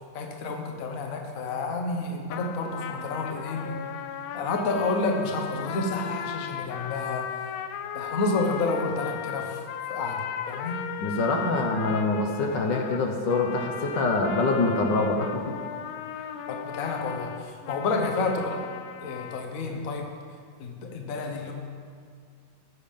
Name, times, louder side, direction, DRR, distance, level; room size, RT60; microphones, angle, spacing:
voice 1, 0.1-3.8 4.3-7.4 7.9-9.6 9.9-10.8 16.5-18.6 19.0-20.1 20.6-21.5, left 3 dB, 50° left, 2 dB, 1.3 m, -30 dB
sound 1, 2.3-19.5, left 9 dB, 80° left, 1.4 m, -37 dB
voice 2, 11.0-15.6 16.1-16.3, left 3 dB, 65° left, 2 dB, 1.5 m, -25 dB
14.5 x 6.9 x 5.4 m, 2.1 s
omnidirectional pair, 2.2 m